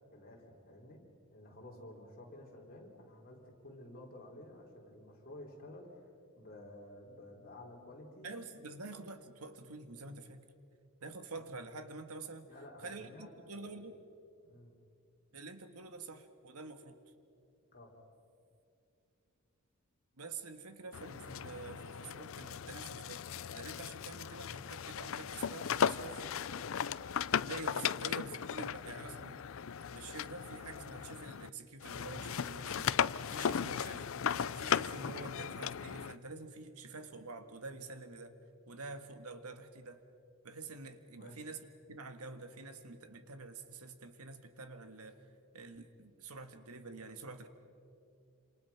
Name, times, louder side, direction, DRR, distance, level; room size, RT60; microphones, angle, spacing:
voice 1, 0.1-1.0 1.3-6.1 6.4-8.8 12.5-13.3 13.7-13.8 14.4-14.7 17.7-17.9 41.2-41.4, left 1 dB, 40° left, -1 dB, 4.2 m, -52 dB
voice 2, 8.2-10.5 11.0-12.5 12.8-14.0 15.3-17.0 20.2-23.2 23.5-26.2 27.2-29.4 29.9-34.1 34.3-38.4 38.7-40.0 40.4-41.6 41.9-45.3 45.5-47.5, right 3 dB, 90° right, 8 dB, 1.7 m, -47 dB
sound 1, 20.9-31.5 31.8-36.2, left 7 dB, 60° left, 0.5 m, -37 dB
27.5 x 27.0 x 5.9 m, 2.6 s
head